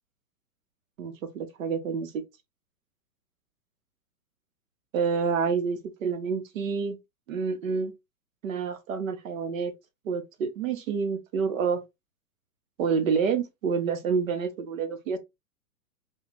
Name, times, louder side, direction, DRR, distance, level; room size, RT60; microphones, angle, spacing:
voice 1, 1.0-2.2 4.9-7.0 7.3-7.9 8.4-9.7 10.0-11.8 12.8-15.2, right 5 dB, 60° right, 0.8 m, -28 dB
2.3 x 2.2 x 3.2 m
hypercardioid pair, 115°, 44 cm